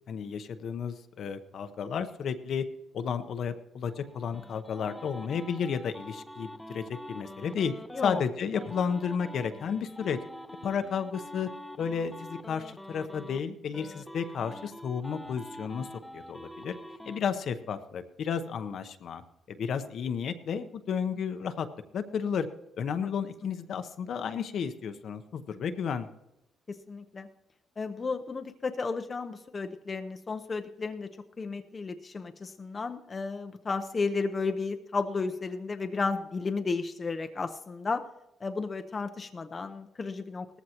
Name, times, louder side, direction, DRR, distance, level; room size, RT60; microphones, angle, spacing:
voice 1, 0.1-2.7 2.9-7.7 8.0-10.2 10.6-11.5 11.8-15.9 16.1-16.7 17.0-19.2 19.5-21.7 21.9-22.5 22.8-26.1, left 7 dB, 65° left, 9 dB, 0.8 m, -32 dB
sound 1, 3.8-8.2 8.5-13.4 13.7-17.2, equal, 5° left, 0.8 m, -45 dB
voice 2, 26.7-27.3 27.8-31.1 31.4-38.0 38.4-40.6, left 4 dB, 35° left, 7 dB, 0.7 m, -33 dB
18.5 x 14.0 x 2.9 m, 0.93 s
cardioid pair, 90°, 0 cm